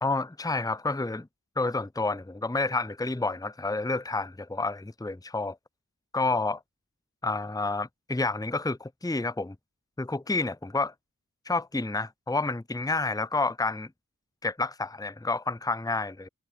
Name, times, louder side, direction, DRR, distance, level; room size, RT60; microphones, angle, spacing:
voice 1, 0.0-1.3 1.6-5.6 6.1-6.6 7.2-9.6 10.0-10.9 11.5-13.9 14.4-16.3, left 3 dB, 10° left, 0.8 m, -29 dB
wide cardioid pair, 40°, 35 cm